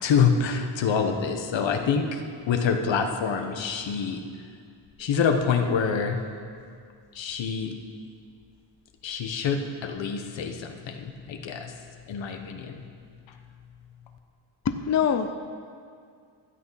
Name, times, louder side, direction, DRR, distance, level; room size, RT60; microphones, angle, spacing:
voice 1, 0.0-2.2 2.5-4.2 5.0-6.2 7.1-7.7 9.0-11.7 12.1-12.8, left 6 dB, 80° left, 5 dB, 1.1 m, -26 dB
voice 2, 14.6-15.3, left 7 dB, 40° left, 8 dB, 0.5 m, -24 dB
12.5 x 8.4 x 5.7 m, 2.2 s
wide cardioid pair, 120°, 44 cm